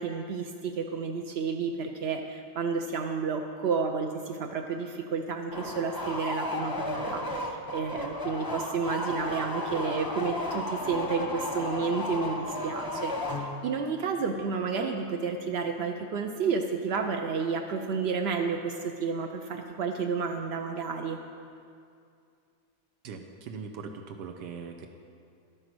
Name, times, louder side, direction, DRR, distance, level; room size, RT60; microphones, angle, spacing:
voice 1, 0.0-21.2, right 5 dB, 65° right, 4 dB, 0.6 m, -31 dB
sound 1, 5.5-13.8, left 1 dB, 20° left, 0.6 m, -34 dB
voice 2, 23.0-24.9, right 5 dB, 85° right, 4 dB, 1.3 m, -40 dB
11.5 x 9.1 x 6.1 m, 2.4 s
omnidirectional pair, 1.8 m